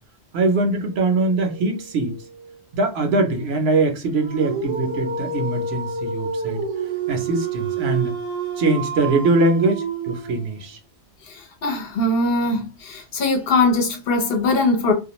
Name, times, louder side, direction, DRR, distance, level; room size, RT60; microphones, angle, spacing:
voice 1, 0.3-6.6 7.1-8.1 8.6-10.8, right 2 dB, 70° right, 0.9 m, -22 dB
Dog, 4.2-10.6, right 4 dB, 50° right, 0.3 m, -28 dB
voice 2, 11.3-14.9, left 2 dB, 60° left, 0.9 m, -21 dB
2.4 x 2.2 x 2.9 m
omnidirectional pair, 1.2 m